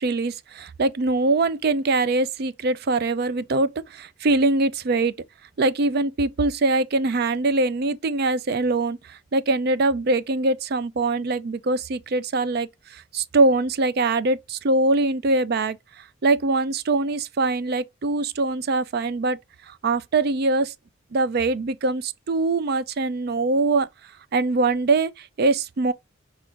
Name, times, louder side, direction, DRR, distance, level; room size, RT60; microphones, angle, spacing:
voice 1, 0.0-5.1 5.6-19.4 19.7-20.7 21.1-23.9 24.3-25.9, right 3 dB, 55° right, 0.4 m, -23 dB
6.0 x 2.4 x 3.5 m
head